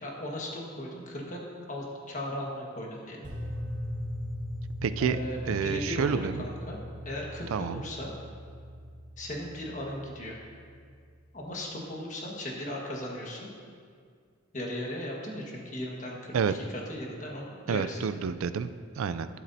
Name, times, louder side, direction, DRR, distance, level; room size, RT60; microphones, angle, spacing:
voice 1, 0.0-1.4 1.7-3.2 5.0-6.8 7.0-8.1 9.2-10.4 11.3-13.5 14.5-18.0, left 1 dB, 35° left, -2 dB, 1.5 m, -37 dB
sound 1, 3.2-11.4, equal, 40° right, 1.7 m, -40 dB
voice 2, 4.8-5.2 5.5-6.4 7.5-7.8 16.3-16.5 17.7-19.3, right 6 dB, 80° right, 12 dB, 0.4 m, -29 dB
12.0 x 12.0 x 2.7 m, 2.1 s
head